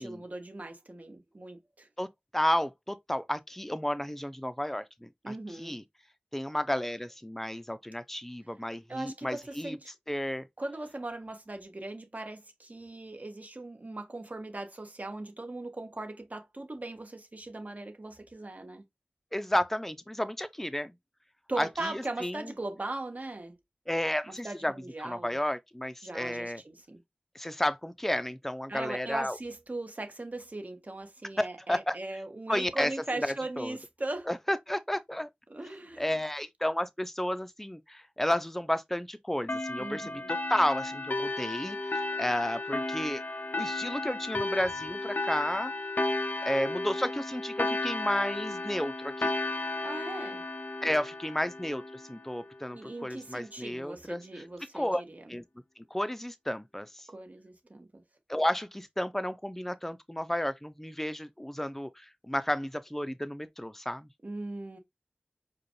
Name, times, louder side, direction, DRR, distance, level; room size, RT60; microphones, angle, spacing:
voice 1, 0.0-1.9 5.2-5.8 8.9-9.9 10.6-18.9 21.5-23.6 24.3-25.4 26.0-27.0 28.7-34.3 35.5-36.1 39.8-40.3 49.8-50.4 52.7-55.3 57.1-58.0 64.2-64.8, right 2 dB, 45° right, 1.2 m, -39 dB
voice 2, 2.0-5.8 6.3-9.8 10.1-10.5 19.3-20.9 21.6-22.5 23.9-24.7 25.0-26.6 27.3-29.4 31.4-32.0 32.5-32.9 33.2-33.8 34.3-35.3 36.0-43.2 43.6-45.7 46.4-49.3 50.8-54.2 54.7-55.0 55.3-55.4 55.9-57.1 58.3-64.1, left 1 dB, 5° left, 0.5 m, -32 dB
sound 1, 39.5-52.6, left 2 dB, 60° left, 0.6 m, -34 dB
4.9 x 2.2 x 3.1 m
wide cardioid pair, 45°, 3 cm